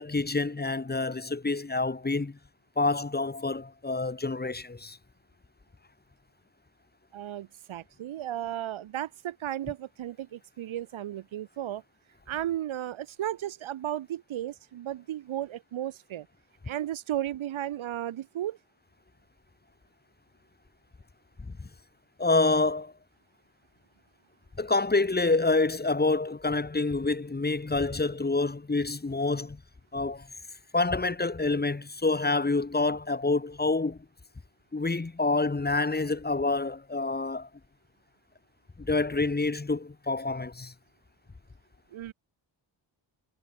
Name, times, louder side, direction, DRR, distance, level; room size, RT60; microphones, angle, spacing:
voice 1, 0.0-2.4 2.8-5.0 21.6-21.7 22.2-22.9 24.6-29.6 29.9-30.3 30.7-34.0 34.7-37.5 38.8-40.7, left 3 dB, 20° left, 1.5 m, -27 dB
voice 2, 7.1-11.8 12.3-16.3 16.6-18.6 41.9-42.1, right 12 dB, 90° right, 1.2 m, -34 dB
cardioid pair, 90°, 46 cm